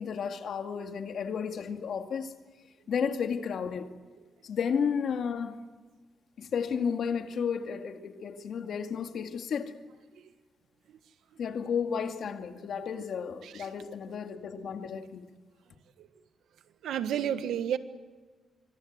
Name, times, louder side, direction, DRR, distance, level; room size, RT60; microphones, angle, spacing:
voice 1, 0.0-2.3 2.9-3.9 4.4-5.6 6.4-9.7 11.4-15.3, left 6 dB, 65° left, 2.2 m, -32 dB
voice 2, 12.7-13.0 13.4-13.8 14.1-14.2 16.0-16.1 16.8-17.8, right 9 dB, 90° right, 1.4 m, -33 dB
26.5 x 24.5 x 8.1 m
cardioid pair, 115°, 0 cm